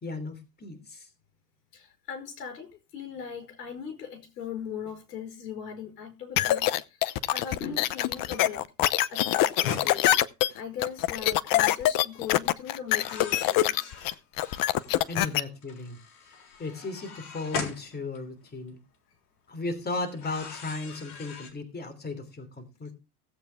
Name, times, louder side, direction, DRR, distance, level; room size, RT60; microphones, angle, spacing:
voice 1, 0.0-1.1 15.1-18.8 19.5-22.9, left 3 dB, 20° left, 3.2 m, -36 dB
voice 2, 1.7-13.9 15.2-15.3, left 7 dB, 85° left, 4.9 m, -39 dB
sound 1, 6.4-15.4, left 14 dB, 45° left, 0.8 m, -24 dB
sound 2, 9.6-10.1 11.1-11.3 12.9-15.2 15.6-18.7 20.1-21.5, left 5 dB, 65° left, 4.0 m, -40 dB
17.0 x 8.1 x 3.5 m
supercardioid pair, 105°, 47 cm